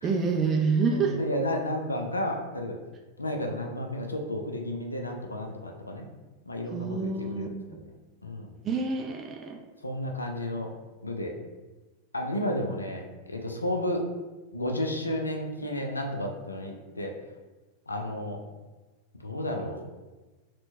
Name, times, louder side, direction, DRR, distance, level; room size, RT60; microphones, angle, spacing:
voice 1, 0.0-1.2 6.7-7.5 8.6-9.6, right 4 dB, 25° right, 3 dB, 0.3 m, -27 dB
voice 2, 0.9-2.8 3.2-6.1 6.5-7.6 8.2-8.5 9.8-10.7 11.0-11.3 12.1-14.0 14.5-17.1 17.9-18.4 19.2-19.8, left 1 dB, 80° left, 2 dB, 0.4 m, -32 dB
4.3 x 2.1 x 2.6 m, 1.2 s
figure-of-eight pair, 90°, 0 cm